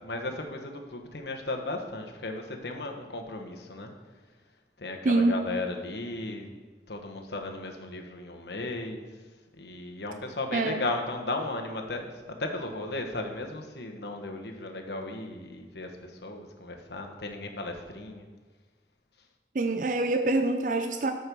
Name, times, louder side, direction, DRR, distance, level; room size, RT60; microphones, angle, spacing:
voice 1, 0.0-3.9 4.8-6.5 6.9-9.1 9.5-18.3, left 2 dB, 70° left, 3 dB, 1.3 m, -35 dB
voice 2, 5.0-5.4 10.5-10.9 19.5-21.1, right 2 dB, 45° right, 6 dB, 0.5 m, -25 dB
11.0 x 5.4 x 6.9 m, 1.3 s
head